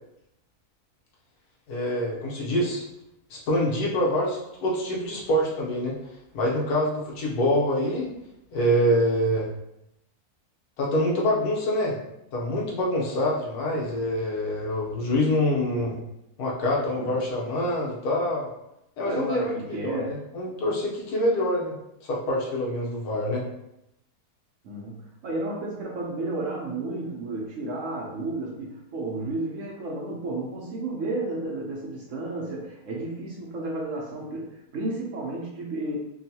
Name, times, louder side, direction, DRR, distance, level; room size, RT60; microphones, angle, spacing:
voice 1, 1.7-2.8 3.3-6.0 6.3-8.1 8.5-9.5 10.8-12.0 12.3-16.0 16.4-18.5 19.0-21.7 22.0-23.4, left 1 dB, 75° left, -3 dB, 1.3 m, -25 dB
voice 2, 19.0-20.2 24.6-36.0, right 2 dB, 65° right, -2 dB, 0.9 m, -32 dB
3.7 x 2.3 x 2.7 m, 0.83 s
omnidirectional pair, 1.6 m